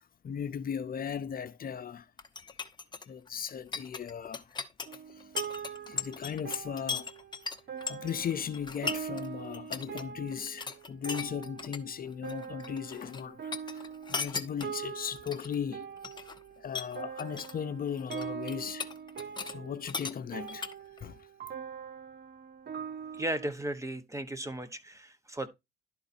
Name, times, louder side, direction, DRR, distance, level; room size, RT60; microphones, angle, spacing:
voice 1, 0.0-2.1 3.1-4.6 4.9-5.3 5.9-7.1 7.8-16.3 16.6-18.9 19.4-20.7 21.0-21.3, left 8 dB, 45° left, 0.7 m, -37 dB
sound 1, 2.2-9.3 9.5-10.0 10.3-11.8 12.1-13.2 13.5-15.6 16.0-16.4 16.7-17.6 17.9-19.6 19.8-21.0, left 5 dB, 20° left, 0.9 m, -38 dB
sound 2, 4.9-23.5, right 7 dB, 60° right, 1.1 m, -43 dB
voice 2, 23.2-25.5, right 1 dB, 15° right, 1.0 m, -35 dB
11.5 x 4.0 x 4.2 m
cardioid pair, 90°, 20 cm